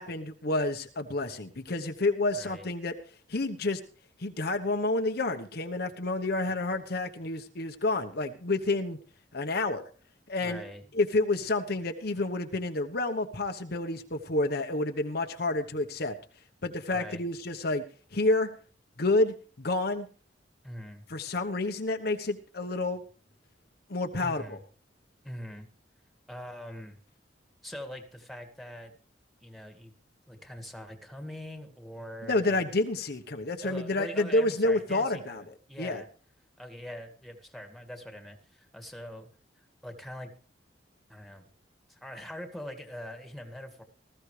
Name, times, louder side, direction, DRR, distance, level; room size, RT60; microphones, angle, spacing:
voice 1, 0.0-2.9 3.3-3.8 4.2-9.0 9.3-9.8 10.3-10.6 10.9-16.2 16.6-17.8 18.1-18.5 19.0-20.1 21.1-23.0 23.9-24.6 32.2-36.0, left 2 dB, 60° left, 5 dB, 1.1 m, -29 dB
voice 2, 2.3-2.7 10.4-10.8 16.9-17.2 20.6-21.1 24.2-24.6 25.2-25.7 26.3-27.0 27.6-28.9 29.4-29.9 30.3-32.6 33.6-36.1 36.6-39.3 39.8-40.3 41.1-41.5 41.9-43.8, left 1 dB, ahead, 5 dB, 2.0 m, -43 dB
19.5 x 14.5 x 3.3 m, 0.40 s
head